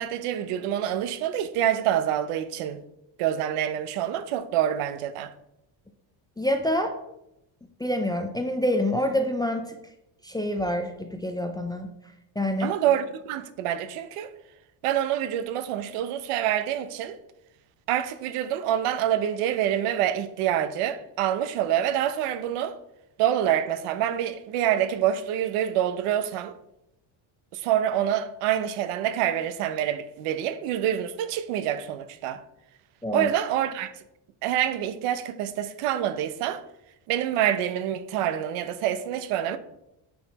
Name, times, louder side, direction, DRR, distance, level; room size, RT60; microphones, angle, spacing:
voice 1, 0.0-2.8 3.2-5.3 12.6-14.3 14.8-17.2 17.9-22.7 23.2-26.5 27.5-32.4 33.1-33.9 34.4-36.6 37.1-39.6, right 10 dB, 90° right, 0.8 m, -26 dB
voice 2, 6.4-6.9 7.8-9.8 10.2-11.9 12.4-12.8 33.0-33.3, left 1 dB, 10° left, 0.3 m, -27 dB
9.1 x 4.8 x 4.1 m
cardioid pair, 150°, 50 cm